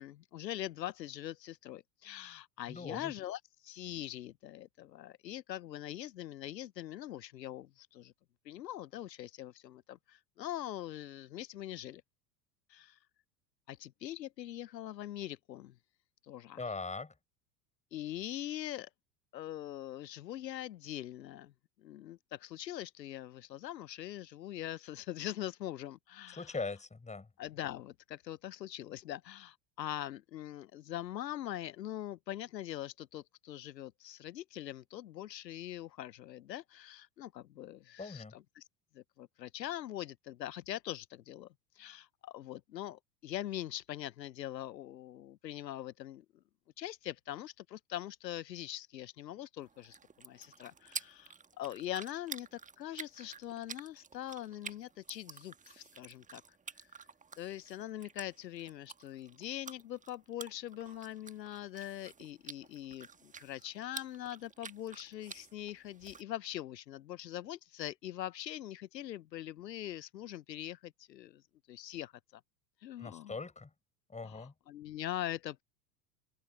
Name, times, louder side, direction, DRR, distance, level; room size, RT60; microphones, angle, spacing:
voice 1, 0.0-8.1 8.4-12.0 12.7-13.0 13.7-15.7 16.2-16.6 17.9-18.9 19.3-21.5 21.8-26.4 27.4-38.2 38.6-38.7 38.9-41.5 41.7-46.2 46.8-56.4 56.8-56.9 57.4-72.4 72.8-73.3 74.2-75.6, left 13 dB, 80° left, 0.8 m, -43 dB
voice 2, 2.7-3.1 16.6-17.1 26.3-27.3 38.0-38.4 73.0-73.7 74.1-74.5, left 4 dB, 15° left, 6.7 m, -41 dB
sound 1, 49.6-66.2, right 5 dB, 15° right, 1.3 m, -50 dB
open air
hypercardioid pair, 80°, 50 cm